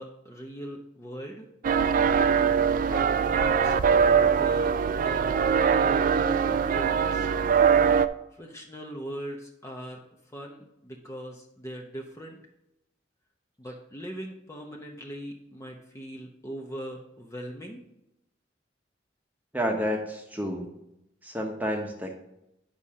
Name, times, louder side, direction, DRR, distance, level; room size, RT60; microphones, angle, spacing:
voice 1, 0.0-1.5 2.9-3.8 4.0-7.3 8.3-10.0 10.3-12.4 13.6-17.8, equal, 15° left, 0 dB, 0.8 m, -40 dB
sound 1, 1.6-8.1, right 6 dB, 45° right, 0.3 m, -22 dB
voice 2, 19.5-20.7 21.2-22.2, equal, 10° right, 2 dB, 1.1 m, -30 dB
10.5 x 5.6 x 3.7 m, 0.85 s
head